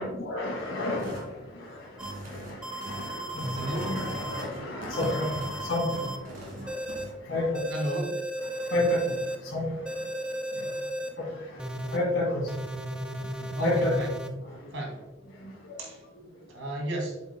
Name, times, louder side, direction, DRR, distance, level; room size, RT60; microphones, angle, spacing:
voice 1, 0.0-7.9 8.4-13.9 14.2-14.7 15.3-16.3, left 1 dB, 70° left, -4 dB, 2.0 m, -32 dB
sound 1, 1.0-1.3 1.8-7.1, right 1 dB, 45° right, 2.4 m, -42 dB
sound 2, 2.0-2.1 2.6-4.4 4.9-6.2 6.7-7.0 7.5-9.4 9.9-11.1 11.6-12.0 12.5-14.3, right 1 dB, 5° right, 0.4 m, -35 dB
voice 2, 3.6-3.9 7.7-8.2 13.5-14.1 14.7-15.0 15.8-16.0 16.5-17.2, right 1 dB, 75° right, -1 dB, 2.6 m, -32 dB
8.3 x 7.2 x 2.2 m, 0.96 s
head